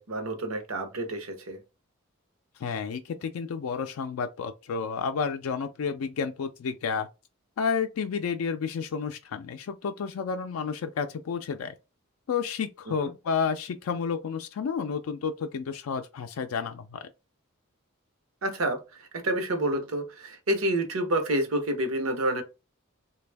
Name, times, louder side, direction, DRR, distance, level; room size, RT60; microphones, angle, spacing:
voice 1, 0.0-1.6 12.9-13.1 18.4-22.4, right 1 dB, 80° right, 0.9 m, -29 dB
voice 2, 2.6-7.1 7.6-11.7 12.3-17.1, left 6 dB, 85° left, 0.4 m, -31 dB
3.3 x 2.3 x 3.3 m
head